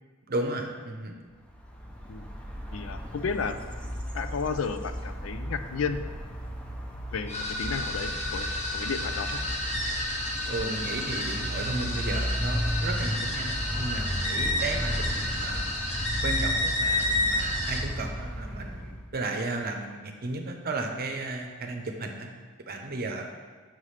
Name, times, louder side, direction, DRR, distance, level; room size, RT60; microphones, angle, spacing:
voice 1, 0.3-1.2 10.5-15.9 16.2-22.3 22.7-23.3, right 2 dB, 50° right, 3 dB, 0.8 m, -34 dB
sound 1, 1.5-19.1, equal, 5° left, 0.6 m, -34 dB
voice 2, 2.7-3.6 4.1-6.0 7.1-8.5 8.7-9.4, left 5 dB, 70° left, 9 dB, 0.4 m, -32 dB
sound 2, 7.3-17.8, left 1 dB, 35° left, 0.9 m, -30 dB
7.4 x 6.1 x 3.3 m, 1.5 s
head